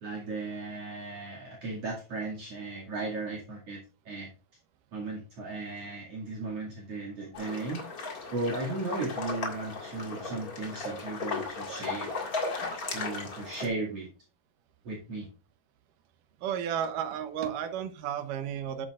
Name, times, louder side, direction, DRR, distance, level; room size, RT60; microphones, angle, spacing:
voice 1, 0.0-4.3 4.9-7.8 8.3-12.2 12.9-14.1 14.8-15.3, right 3 dB, 50° right, -4 dB, 3.0 m, -36 dB
sound 1, 7.3-13.7, left 3 dB, 35° left, 1.8 m, -36 dB
voice 2, 16.4-18.9, right 9 dB, 85° right, 9 dB, 2.6 m, -33 dB
10.0 x 8.2 x 2.4 m, 0.34 s
omnidirectional pair, 3.7 m